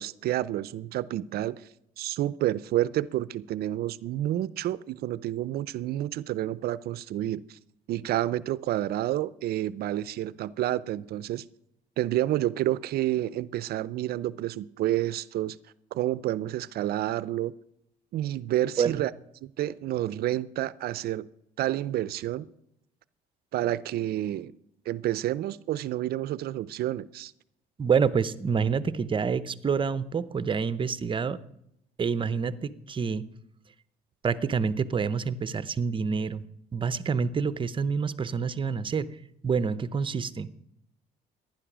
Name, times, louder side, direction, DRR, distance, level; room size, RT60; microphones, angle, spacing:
voice 1, 0.0-1.6 2.0-7.6 7.9-11.4 12.0-15.6 15.9-17.5 18.1-19.1 19.4-21.3 21.6-22.5 23.5-24.5 24.9-27.3, right 13 dB, 65° right, 0.5 m, -29 dB
voice 2, 27.8-31.4 32.0-33.2 34.2-36.4 36.7-39.1 39.4-40.5, right 6 dB, 30° right, 0.7 m, -27 dB
15.5 x 10.5 x 6.1 m
cardioid pair, 110°, 17 cm